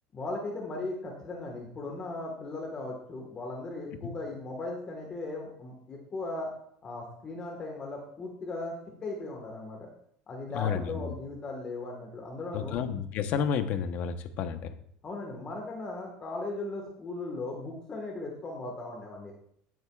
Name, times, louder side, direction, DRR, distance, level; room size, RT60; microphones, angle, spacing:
voice 1, 0.1-6.5 6.8-8.7 9.0-9.9 10.3-12.8 15.0-19.3, left 2 dB, 25° left, 0 dB, 1.5 m, -37 dB
voice 2, 10.5-11.1 12.5-14.7, left 7 dB, 50° left, 9 dB, 0.9 m, -31 dB
16.5 x 7.8 x 2.4 m, 0.66 s
cardioid pair, 155°, 3 cm